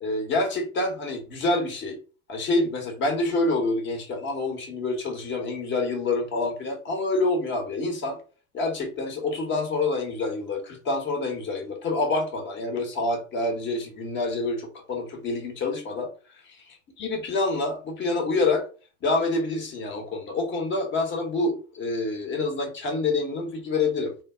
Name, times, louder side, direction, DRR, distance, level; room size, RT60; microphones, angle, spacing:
voice 1, 0.0-2.0 2.3-8.2 8.5-16.1 16.4-18.6 19.0-24.1, left 2 dB, 35° left, 3 dB, 0.9 m, -27 dB
2.1 x 2.0 x 3.4 m, 0.37 s
hypercardioid pair, 95°, 35 cm